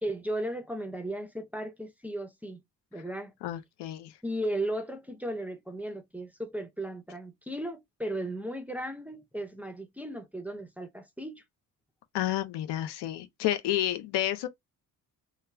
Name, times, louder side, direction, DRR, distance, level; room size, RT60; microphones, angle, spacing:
voice 1, 0.0-2.6 2.9-3.3 4.2-11.4, right 1 dB, 5° right, 0.6 m, -36 dB
voice 2, 3.4-4.1 12.1-14.5, left 13 dB, 80° left, 0.6 m, -30 dB
2.2 x 2.2 x 3.2 m
supercardioid pair, 65°, 40 cm